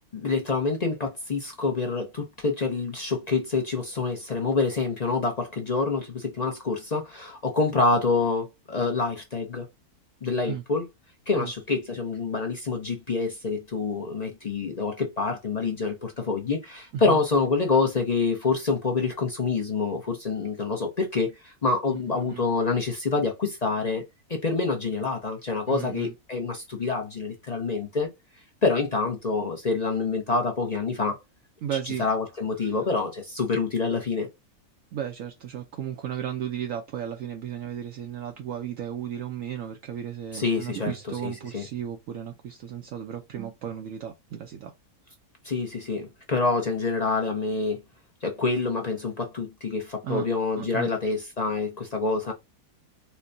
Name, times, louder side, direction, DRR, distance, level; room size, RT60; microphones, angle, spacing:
voice 1, 0.1-9.7 10.2-10.8 11.3-24.0 24.3-28.1 28.6-31.2 31.8-34.3 40.3-40.9 41.2-41.6 45.4-47.8 48.2-52.3, left 4 dB, 40° left, 0.6 m, -27 dB
voice 2, 21.9-22.4 25.7-26.1 31.6-32.0 32.6-32.7 34.9-44.7 50.0-50.3 50.6-50.9, right 10 dB, 70° right, 0.9 m, -34 dB
4.3 x 2.1 x 2.6 m
omnidirectional pair, 1.6 m